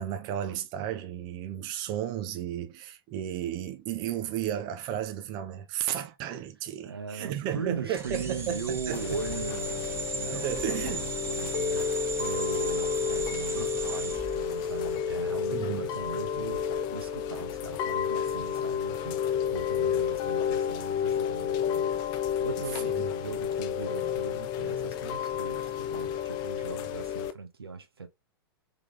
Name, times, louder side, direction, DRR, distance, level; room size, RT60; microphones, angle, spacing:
voice 1, 0.0-9.0 10.3-11.1 15.5-15.8 22.9-23.1, right 10 dB, 35° right, 0.6 m, -33 dB
voice 2, 6.8-28.1, right 5 dB, 80° right, 0.7 m, -39 dB
sound 1, 8.0-15.1, right 4 dB, 20° right, 1.0 m, -37 dB
Chime / Rain, 8.9-27.3, left 8 dB, 35° left, 0.5 m, -31 dB
3.6 x 3.4 x 2.4 m
figure-of-eight pair, 100°, 13 cm